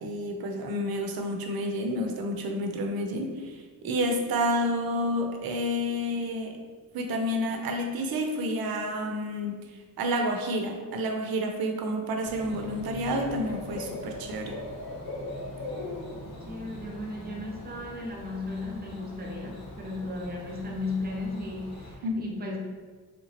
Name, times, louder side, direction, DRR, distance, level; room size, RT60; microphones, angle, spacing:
voice 1, 0.0-3.6 3.8-6.6 6.9-9.6 10.0-14.6 22.0-22.2, equal, 80° right, 3 dB, 0.6 m, -29 dB
Bird / Cricket, 12.2-21.9, left 2 dB, 80° left, 1.1 m, -40 dB
voice 2, 16.4-22.6, left 2 dB, 25° right, -1 dB, 0.5 m, -35 dB
3.2 x 2.9 x 2.8 m, 1.5 s
wide cardioid pair, 170°, 36 cm